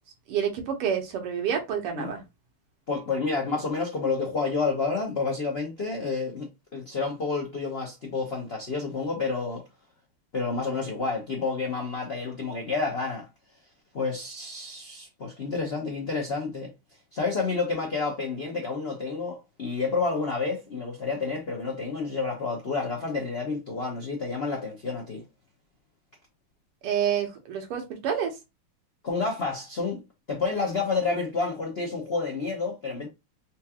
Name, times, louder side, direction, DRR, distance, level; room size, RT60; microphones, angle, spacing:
voice 1, 0.3-2.2 26.8-28.3, right 8 dB, 85° right, 2.0 m, -28 dB
voice 2, 2.9-9.6 10.3-13.3 13.9-16.7 17.1-25.2 29.0-30.0 30.3-33.1, left 4 dB, 90° left, 0.5 m, -29 dB
4.4 x 2.4 x 2.8 m
omnidirectional pair, 2.4 m